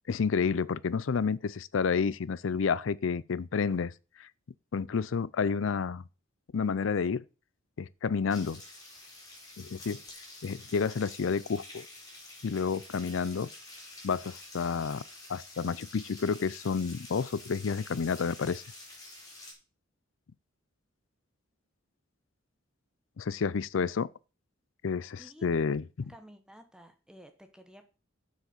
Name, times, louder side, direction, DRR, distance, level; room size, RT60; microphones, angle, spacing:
voice 1, 0.1-3.9 4.2-4.3 4.7-6.0 6.5-7.2 7.8-8.6 9.6-10.0 10.4-11.9 12.4-13.5 14.0-15.0 15.3-18.6 23.2-24.1 24.8-26.1, left 5 dB, 70° left, 0.5 m, -30 dB
sound 1, 8.3-19.5, left 2 dB, 20° left, 4.0 m, -49 dB
voice 2, 25.2-25.5 26.0-27.9, equal, 5° right, 1.0 m, -53 dB
7.4 x 6.4 x 6.7 m
head